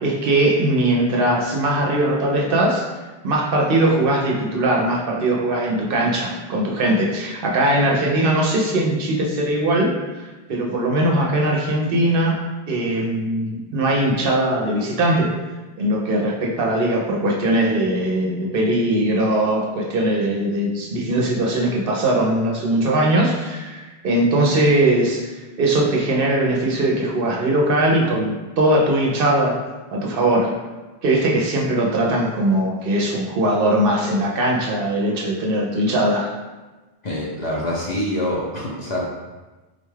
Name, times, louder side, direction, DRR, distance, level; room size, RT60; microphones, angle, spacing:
voice 1, 0.0-2.8 3.2-12.4 12.7-15.3 15.8-29.6 29.9-30.6 31.0-36.3, right 1 dB, 65° right, -1 dB, 0.7 m, -20 dB
voice 2, 37.0-39.0, left 1 dB, 50° left, -4 dB, 0.7 m, -25 dB
3.9 x 2.3 x 3.2 m, 1.2 s
omnidirectional pair, 1.1 m